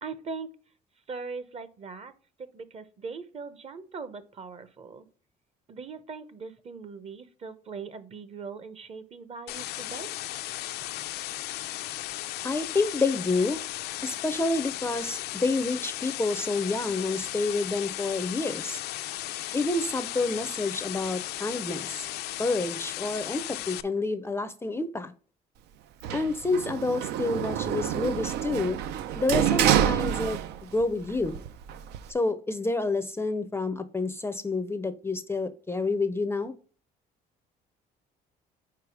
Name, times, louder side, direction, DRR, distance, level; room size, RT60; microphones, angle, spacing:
voice 1, 0.0-0.5 1.1-2.1 2.4-5.1 5.7-10.1, right 4 dB, 40° right, 13 dB, 0.8 m, -40 dB
sound 1, 9.5-23.8, left 15 dB, 75° left, 0.4 m, -36 dB
voice 2, 12.4-13.6 14.0-18.8 19.5-22.1 22.4-25.1 26.1-28.8 29.2-31.4 32.1-36.5, left 3 dB, 15° left, 12 dB, 0.5 m, -29 dB
Sliding door, 26.0-30.8 31.2-32.1, right 10 dB, 80° right, 0.5 m, -27 dB
4.8 x 4.6 x 4.7 m, 0.41 s
cardioid pair, 110°, 17 cm